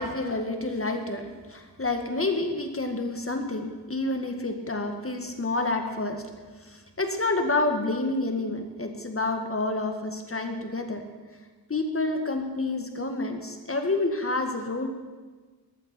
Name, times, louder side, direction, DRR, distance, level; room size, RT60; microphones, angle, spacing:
voice 1, 0.0-6.2 6.6-11.1 11.7-14.9, left 2 dB, 35° left, 5 dB, 1.8 m, -29 dB
19.0 x 14.5 x 4.5 m, 1.3 s
cardioid pair, 60°, 39 cm